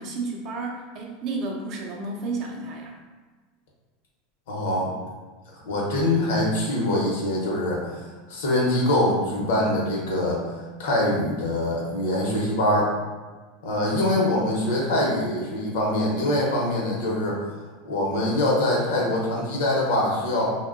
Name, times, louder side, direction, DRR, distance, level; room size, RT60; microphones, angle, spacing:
voice 1, 0.0-3.0, right 3 dB, 45° right, 0 dB, 0.5 m, -32 dB
voice 2, 4.5-4.9 5.5-8.0 8.3-10.4 10.8-12.9 13.6-17.4 17.8-20.6, left 1 dB, 80° left, -3 dB, 0.7 m, -24 dB
2.7 x 2.1 x 2.4 m, 1.3 s
supercardioid pair, 135°, 0 cm